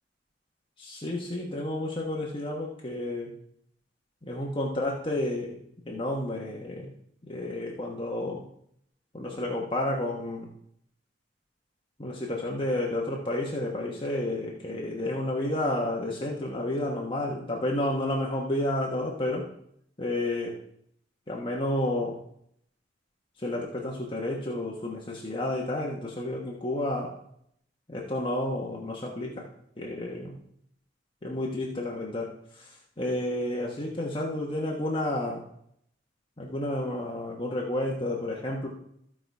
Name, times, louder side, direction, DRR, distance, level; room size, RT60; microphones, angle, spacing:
voice 1, 0.8-3.3 4.2-5.6 5.9-6.9 7.3-8.4 9.1-10.5 12.0-19.5 20.0-20.5 21.3-22.2 23.4-27.1 27.9-29.4 29.8-30.4 31.2-32.7 33.0-35.4 36.4-38.7, left 1 dB, 30° left, -3 dB, 1.3 m, -31 dB
14.5 x 4.9 x 4.8 m, 0.70 s
head